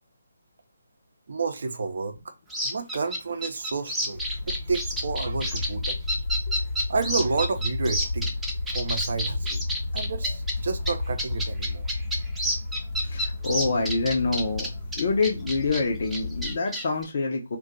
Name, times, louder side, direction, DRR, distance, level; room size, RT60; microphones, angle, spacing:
voice 1, 1.3-2.3 2.6-6.0 6.9-8.3 8.7-9.6 9.9-11.9, right 4 dB, 55° right, 0.6 m, -30 dB
sound 1, 2.5-10.5 10.9-11.0 11.2-15.8 16.1-17.0, equal, 5° right, 0.6 m, -29 dB
sound 2, 4.1-16.6, left 2 dB, 65° left, 1.0 m, -32 dB
voice 2, 13.0-14.7 15.0-17.6, left 3 dB, 45° left, 0.6 m, -26 dB
2.6 x 2.3 x 3.7 m
figure-of-eight pair, 145°, 0 cm